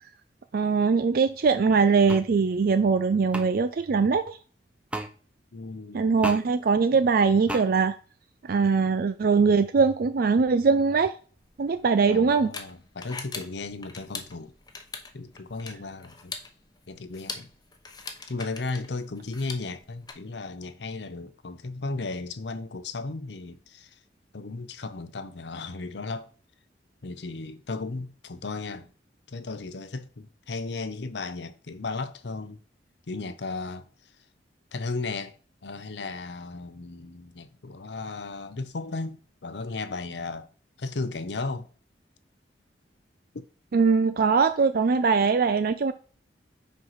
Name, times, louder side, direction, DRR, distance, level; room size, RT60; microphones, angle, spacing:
voice 1, 0.5-4.4 5.9-8.0 8.4-11.1 11.6-12.5 43.7-45.9, right 5 dB, 55° right, 0.4 m, -22 dB
sound 1, 2.1-2.3 3.3-3.5 4.9-5.1 6.2-6.4 7.5-7.6, right 1 dB, 5° right, 0.6 m, -32 dB
voice 2, 5.5-6.4 6.9-7.0 12.1-14.5 15.1-16.3 16.9-17.5 18.3-24.0 24.3-26.3 27.0-28.9 29.3-32.6 33.1-34.1 34.7-35.3 35.6-40.5 40.8-41.7 43.3-43.4, left 3 dB, 75° left, 0.7 m, -35 dB
sound 2, 11.4-20.1, left 4 dB, 25° left, 0.9 m, -42 dB
5.2 x 4.7 x 5.7 m
head